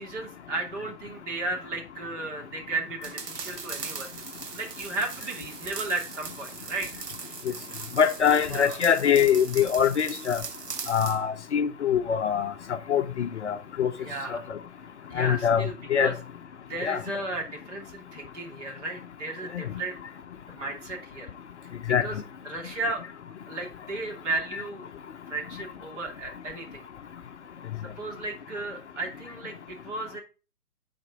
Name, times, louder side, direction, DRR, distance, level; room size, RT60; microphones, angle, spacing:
voice 1, 0.0-4.1 4.5-6.9 8.5-8.8 14.0-14.5 15.1-16.1 16.6-20.0 20.5-21.3 22.0-23.0 23.5-24.9 25.3-26.9 27.8-30.2, right 2 dB, 45° right, 2.8 m, -34 dB
sound 1, 3.0-11.2, right 6 dB, 80° right, 1.2 m, -39 dB
voice 2, 8.0-10.4 10.9-13.9 14.3-14.4 15.2-16.1 16.8-17.0 19.5-19.6 21.9-22.1, left 8 dB, 50° left, 0.6 m, -24 dB
9.3 x 4.3 x 5.1 m
hypercardioid pair, 150°, 47 cm